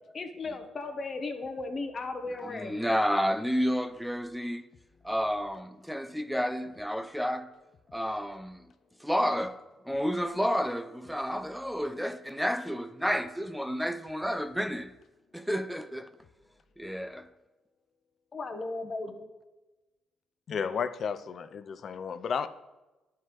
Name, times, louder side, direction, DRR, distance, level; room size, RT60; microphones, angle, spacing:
voice 1, 0.1-2.8 18.3-19.3, left 3 dB, 40° left, 0.8 m, -36 dB
voice 2, 2.4-4.6 5.0-7.5 7.9-8.6 9.0-9.6 9.9-14.9 15.3-16.1 16.8-17.3, equal, ahead, 0.4 m, -30 dB
voice 3, 20.5-22.5, left 6 dB, 55° left, 0.4 m, -33 dB
11.0 x 4.6 x 3.0 m
cardioid pair, 80°, 0 cm